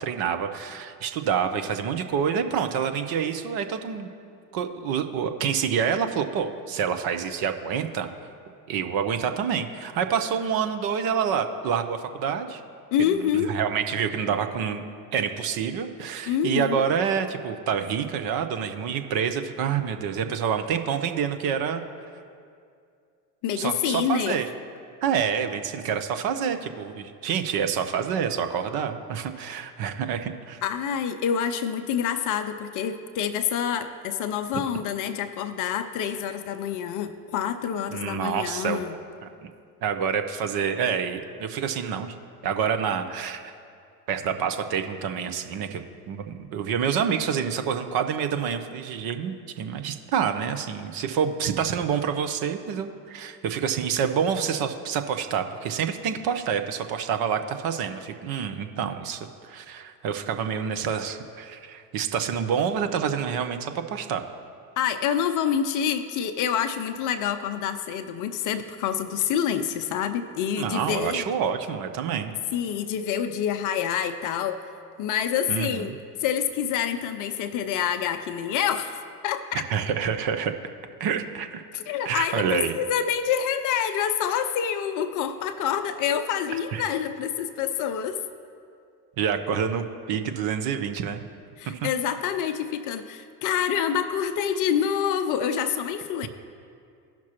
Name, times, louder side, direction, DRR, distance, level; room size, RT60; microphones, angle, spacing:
voice 1, 0.0-4.1 4.5-8.1 8.7-12.6 13.3-14.8 15.1-21.8 23.6-24.5 25.0-30.6 37.9-38.8 39.8-42.1 42.4-43.5 44.1-64.2 70.6-72.3 75.5-76.0 79.5-80.5 81.0-81.6 82.0-82.7 86.7-86.8 89.2-91.2 91.7-91.9, right 7 dB, 45° right, 7 dB, 0.7 m, -27 dB
voice 2, 12.9-13.6 16.3-16.8 23.4-24.4 30.6-39.0 64.8-71.2 72.5-74.6 75.0-75.9 76.2-79.6 81.7-88.2 91.6-96.3, left 8 dB, 40° left, 10 dB, 0.5 m, -27 dB
15.5 x 5.9 x 2.9 m, 2.3 s
figure-of-eight pair, 65°, 50 cm